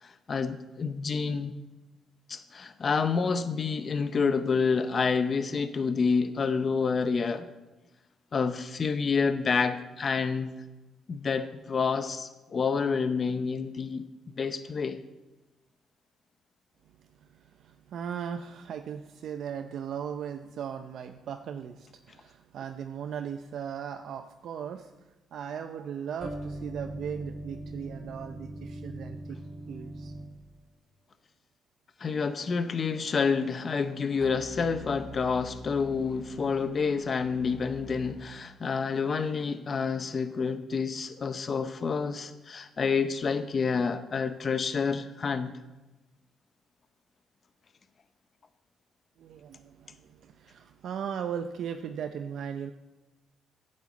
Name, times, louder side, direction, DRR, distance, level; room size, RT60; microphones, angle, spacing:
voice 1, 0.0-1.5 2.3-7.5 8.3-10.5 11.1-14.1 14.4-15.0 32.0-45.5, left 5 dB, 45° left, 10 dB, 0.7 m, -28 dB
voice 2, 17.3-24.9 25.3-29.4 29.7-30.1 49.2-52.7, right 8 dB, 70° right, 7 dB, 0.5 m, -38 dB
sound 1, 26.2-30.6 34.2-38.4, equal, 10° left, 2.0 m, -42 dB
9.2 x 7.6 x 8.3 m, 1.1 s
cardioid pair, 90°, 0 cm